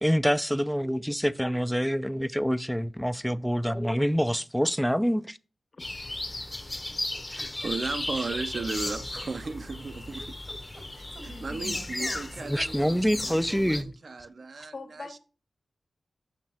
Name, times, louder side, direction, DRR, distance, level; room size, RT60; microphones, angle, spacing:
voice 1, 0.0-5.4 12.5-13.9, equal, ahead, 0.3 m, -26 dB
sound 1, 5.8-13.8, left 2 dB, 25° left, 0.8 m, -35 dB
sound 2, 6.9-13.2, right 2 dB, 85° right, 2.4 m, -46 dB
voice 2, 7.3-10.3 11.2-13.0 13.2-14.7, right 4 dB, 60° right, 0.6 m, -35 dB
voice 3, 12.5-12.9 14.5-15.2, left 4 dB, 65° left, 1.5 m, -44 dB
7.4 x 6.2 x 2.8 m
cardioid pair, 60°, 0 cm